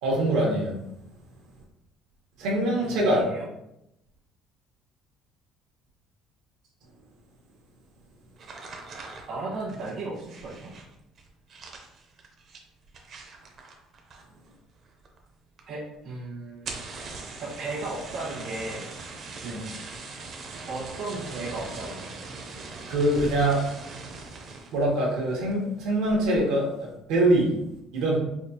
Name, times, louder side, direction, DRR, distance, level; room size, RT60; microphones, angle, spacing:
voice 1, 0.0-0.8 2.4-3.2 19.4-19.6 22.9-23.6 24.7-27.5 27.9-28.2, right 1 dB, 85° right, -2 dB, 1.2 m, -24 dB
voice 2, 2.9-3.4 9.3-10.7 15.7-16.9 17.4-18.9 20.7-22.3, right 2 dB, 50° right, -7 dB, 1.1 m, -35 dB
sound 1, 8.4-14.5 14.8-15.3 15.6-15.7 15.9-16.0 16.5-24.8 25.3-25.6 26.1-26.4, right 3 dB, 35° right, 0.5 m, -41 dB
4.9 x 2.4 x 2.8 m, 0.84 s
cardioid pair, 175°, 0 cm